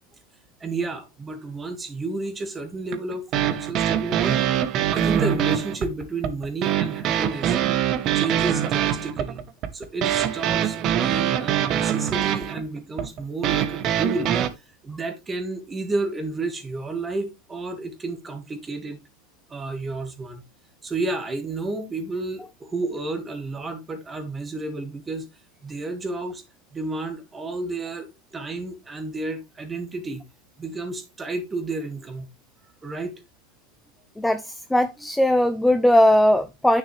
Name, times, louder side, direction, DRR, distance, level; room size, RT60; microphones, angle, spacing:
voice 1, 0.6-4.5 4.9-7.6 8.2-9.4 9.7-14.3 14.8-19.0 19.5-20.4 20.8-25.2 25.6-26.4 26.7-30.2 30.6-32.3 32.8-33.2, right 2 dB, 15° right, 1.7 m, -31 dB
sound 1, 2.9-14.5, right 10 dB, 35° right, 1.0 m, -23 dB
voice 2, 34.2-36.8, left 1 dB, 5° left, 0.5 m, -19 dB
9.7 x 6.3 x 3.2 m
supercardioid pair, 155°, 0 cm